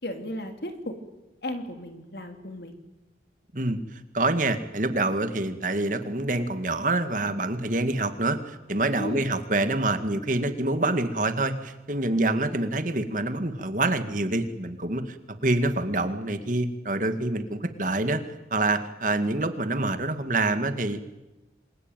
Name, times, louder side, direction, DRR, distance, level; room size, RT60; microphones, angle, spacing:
voice 1, 0.0-1.0 1.4-2.8 9.0-9.3, left 1 dB, 60° left, 6 dB, 3.5 m, -35 dB
voice 2, 3.5-15.2 15.4-18.2 18.5-21.0, right 2 dB, 45° right, 9 dB, 2.1 m, -26 dB
27.5 x 22.0 x 9.2 m, 1.0 s
head